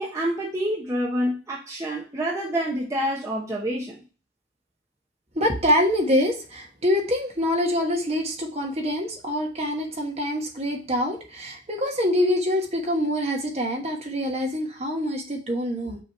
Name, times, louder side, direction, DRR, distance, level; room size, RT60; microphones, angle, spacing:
voice 1, 0.0-4.0, equal, 15° right, -4 dB, 1.0 m, -27 dB
voice 2, 5.3-16.0, left 1 dB, 35° right, 1 dB, 1.3 m, -25 dB
6.2 x 3.1 x 5.4 m, 0.35 s
head